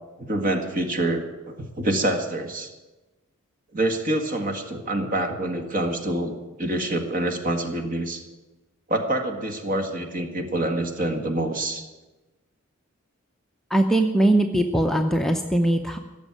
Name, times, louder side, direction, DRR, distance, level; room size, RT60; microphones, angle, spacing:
voice 1, 0.2-2.7 3.7-8.2 8.9-11.8, right 1 dB, 40° right, 5 dB, 1.7 m, -26 dB
voice 2, 13.7-16.0, right 1 dB, ahead, 3 dB, 0.6 m, -21 dB
16.0 x 7.3 x 9.6 m, 1.1 s
head